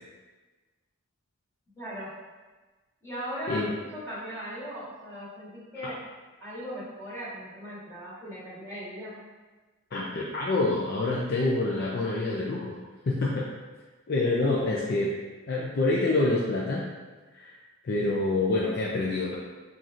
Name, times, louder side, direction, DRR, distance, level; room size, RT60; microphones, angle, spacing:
voice 1, 1.8-2.1 3.0-6.0 6.4-9.2, equal, 10° left, -11 dB, 1.4 m, -38 dB
voice 2, 9.9-12.8 13.0-13.5 14.1-15.1 15.5-16.9 17.3-17.6 17.8-19.4, left 2 dB, 45° left, -3 dB, 0.4 m, -27 dB
5.7 x 2.5 x 2.5 m, 1.3 s
head